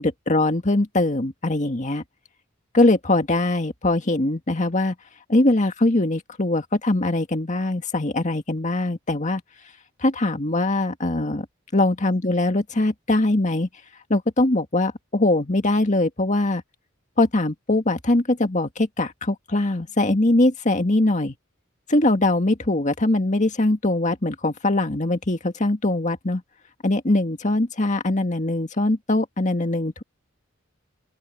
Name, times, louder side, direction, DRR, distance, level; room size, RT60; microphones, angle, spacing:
voice 1, 0.0-2.0 2.7-4.9 5.3-9.4 10.0-11.4 11.7-13.7 14.1-16.6 17.2-21.3 21.9-26.4 26.8-30.0, left 2 dB, 40° left, 2.0 m, -22 dB
open air
head